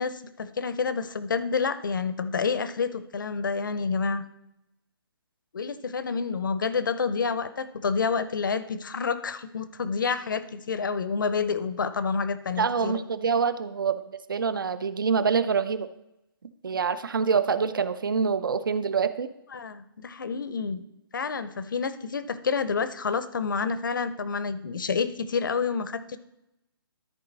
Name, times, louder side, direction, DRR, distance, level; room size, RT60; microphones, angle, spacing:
voice 1, 0.0-4.2 5.5-13.0 19.5-20.8 21.1-26.2, left 5 dB, 55° left, 13 dB, 0.6 m, -28 dB
voice 2, 12.6-14.0 14.3-15.9 16.6-19.3, right 6 dB, 60° right, 13 dB, 0.6 m, -25 dB
13.5 x 4.7 x 4.0 m, 0.87 s
hypercardioid pair, 180°, 13 cm